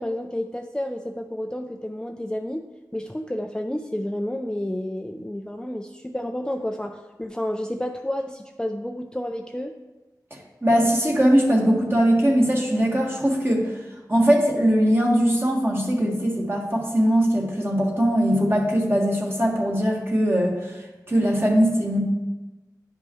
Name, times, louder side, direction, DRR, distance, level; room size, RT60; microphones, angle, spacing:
voice 1, 0.0-9.8, left 1 dB, 10° left, 4 dB, 0.4 m, -30 dB
voice 2, 10.6-13.7 14.1-22.0, equal, 35° right, -2 dB, 1.7 m, -21 dB
9.7 x 5.3 x 3.1 m, 1.1 s
wide cardioid pair, 45°, 7 cm